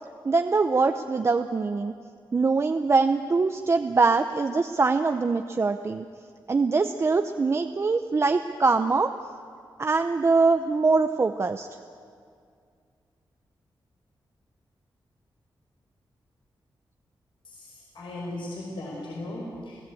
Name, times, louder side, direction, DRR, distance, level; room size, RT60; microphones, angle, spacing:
voice 1, 0.2-1.9 2.3-6.1 6.5-9.1 9.8-11.7, right 4 dB, 30° right, 7 dB, 0.6 m, -23 dB
voice 2, 17.4-19.8, left 1 dB, 85° left, -3 dB, 4.9 m, -37 dB
30.0 x 17.0 x 8.5 m, 2.2 s
wide cardioid pair, 160°, 8 cm